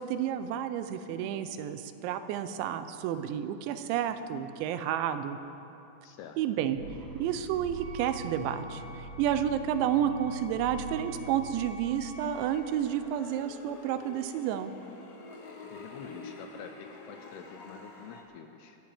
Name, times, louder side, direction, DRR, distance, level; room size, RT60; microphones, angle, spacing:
voice 1, 0.0-5.4 6.4-6.8 7.2-8.8 9.2-14.7, right 10 dB, 90° right, 10 dB, 3.0 m, -30 dB
voice 2, 6.0-6.4 15.7-18.8, left 7 dB, 80° left, 5 dB, 2.5 m, -47 dB
sound 1, 6.8-12.8, right 2 dB, 45° right, 4.2 m, -44 dB
Wind instrument woodwind instrument, 7.8-12.7, right 3 dB, 70° right, 2.7 m, -50 dB
sound 2, 12.2-18.2, left 2 dB, 60° left, 1.6 m, -48 dB
25.0 x 14.5 x 3.5 m, 2.9 s
omnidirectional pair, 5.2 m